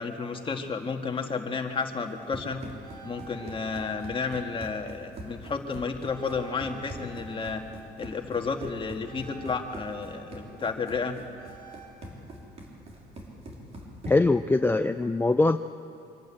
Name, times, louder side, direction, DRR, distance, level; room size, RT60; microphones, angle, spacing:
voice 1, 0.0-2.6 3.0-7.6 8.0-11.2, left 5 dB, 30° left, 4 dB, 1.8 m, -32 dB
Run, 2.0-14.4, right 1 dB, 40° right, 3.8 m, -44 dB
sound 1, 2.8-5.8 6.1-11.9, right 5 dB, 60° right, 4.7 m, -49 dB
voice 2, 14.1-15.6, left 2 dB, 10° left, 8 dB, 0.4 m, -22 dB
25.0 x 12.0 x 8.9 m, 2.8 s
cardioid pair, 110°, 17 cm